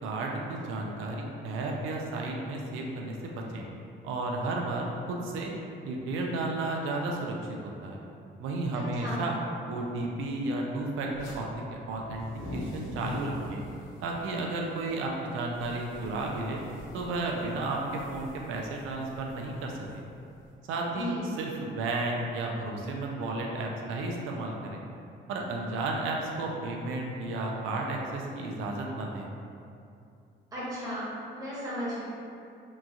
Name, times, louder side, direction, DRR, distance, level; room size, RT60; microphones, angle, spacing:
voice 1, 0.0-3.7 4.0-5.5 5.9-8.0 8.4-9.3 9.7-13.6 14.0-16.6 16.9-20.0 20.7-24.8 25.3-29.3, right 2 dB, 90° right, 0 dB, 0.4 m, -33 dB
voice 2, 8.7-9.2 20.9-21.3 30.5-31.0 31.3-32.0, equal, 20° right, -10 dB, 1.1 m, -35 dB
sound 1, 11.1-11.4 11.9-20.5, left 1 dB, 80° left, 0.6 m, -44 dB
2.9 x 2.3 x 2.5 m, 2.5 s
cardioid pair, 90°, 20 cm